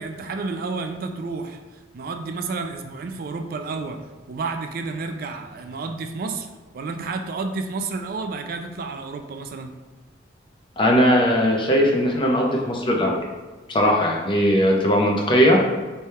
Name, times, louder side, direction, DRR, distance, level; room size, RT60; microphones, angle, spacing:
voice 1, 0.0-1.6 1.9-9.7, right 4 dB, 50° right, 6 dB, 0.3 m, -31 dB
voice 2, 10.8-13.2 13.7-15.6, equal, 25° left, -1 dB, 0.5 m, -19 dB
3.3 x 2.2 x 4.2 m, 1.3 s
head